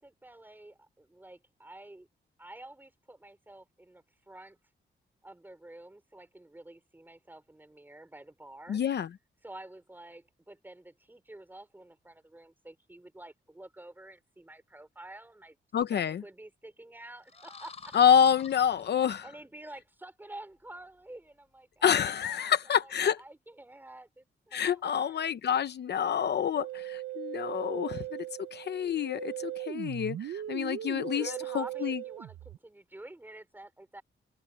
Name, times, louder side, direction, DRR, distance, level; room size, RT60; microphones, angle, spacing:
voice 1, 0.0-2.1 2.4-4.6 5.2-8.8 9.4-15.6 15.9-18.0 19.2-25.3 30.8-34.0, right 1 dB, 10° right, 4.0 m, -49 dB
voice 2, 8.7-9.1 15.7-16.2 17.9-19.2 21.8-23.2 24.5-28.2 28.5-32.0, left 8 dB, 55° left, 0.7 m, -27 dB
sound 1, 17.2-19.5, left 5 dB, 35° left, 2.8 m, -49 dB
Musical instrument, 26.5-32.6, right 13 dB, 85° right, 0.7 m, -38 dB
open air
wide cardioid pair, 170°, 20 cm